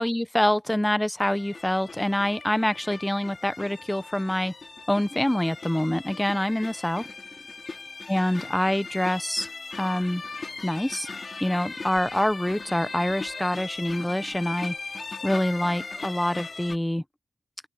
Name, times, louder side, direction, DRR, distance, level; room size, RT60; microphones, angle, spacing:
voice 1, 0.0-4.5 4.9-7.1 8.1-9.5 9.8-10.2 10.6-11.1 11.4-14.7 15.2-17.0, left 1 dB, 5° left, 0.7 m, -26 dB
sound 1, 1.2-16.8, left 3 dB, 40° left, 3.6 m, -39 dB
open air
cardioid pair, 80°, 0 cm